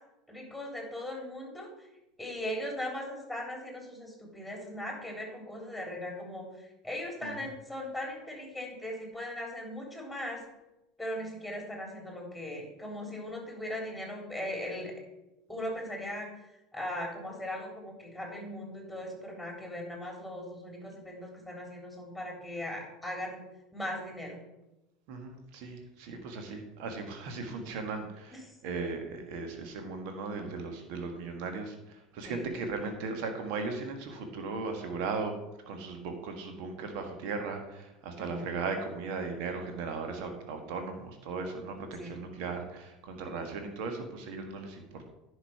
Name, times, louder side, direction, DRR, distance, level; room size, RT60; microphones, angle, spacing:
voice 1, 0.3-1.7 2.2-10.4 11.0-14.9 15.5-16.3 16.7-23.4 23.7-24.4 28.3-28.5 32.2-32.5 38.2-38.5 42.0-42.2, left 1 dB, ahead, 1 dB, 3.6 m, -39 dB
voice 2, 25.1-35.3 35.7-44.8, right 4 dB, 60° right, 5 dB, 1.6 m, -37 dB
10.0 x 5.5 x 5.8 m, 0.94 s
figure-of-eight pair, 75°, 0 cm